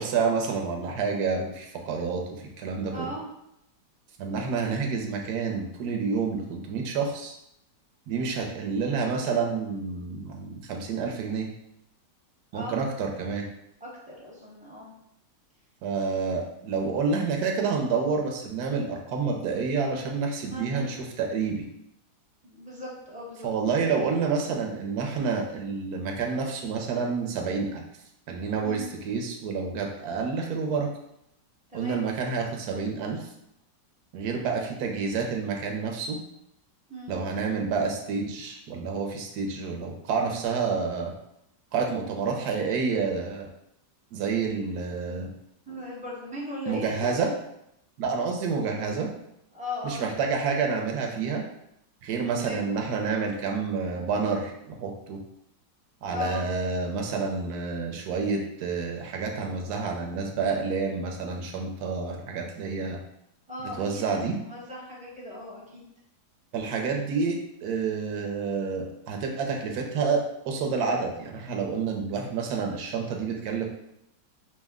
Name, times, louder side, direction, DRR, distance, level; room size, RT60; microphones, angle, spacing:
voice 1, 0.0-3.1 4.2-7.3 8.1-11.5 12.5-13.5 15.8-21.6 23.4-27.8 28.3-30.9 31.7-33.3 34.1-36.2 37.1-41.1 41.7-43.5 44.1-45.3 46.7-47.3 48.0-49.1 49.8-51.4 52.0-55.2 56.0-63.0 63.8-64.4 66.5-73.7, right 5 dB, 70° right, 2 dB, 1.1 m, -29 dB
voice 2, 2.9-3.3 12.5-12.8 13.8-15.0 20.4-20.9 22.4-23.5 28.6-28.9 31.7-32.0 36.9-37.1 45.7-47.1 48.8-48.9 49.5-50.3 52.3-52.7 56.1-56.4 63.5-65.9, left 1 dB, 10° right, -6 dB, 0.4 m, -38 dB
5.0 x 2.1 x 3.5 m, 0.79 s
omnidirectional pair, 1.9 m